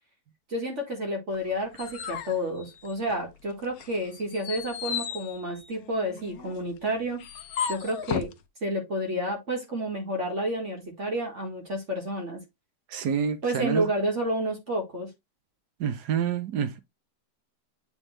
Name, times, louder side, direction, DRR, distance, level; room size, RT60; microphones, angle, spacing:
voice 1, 0.5-7.2 7.7-8.3 8.6-12.4 13.4-15.1, right 1 dB, 45° right, 1.9 m, -30 dB
sound 1, 1.3-3.3 3.7-8.4, left 8 dB, 65° left, 1.1 m, -36 dB
voice 2, 12.9-13.9 15.8-16.8, right 7 dB, 75° right, 1.4 m, -28 dB
8.1 x 3.6 x 3.2 m
omnidirectional pair, 1.8 m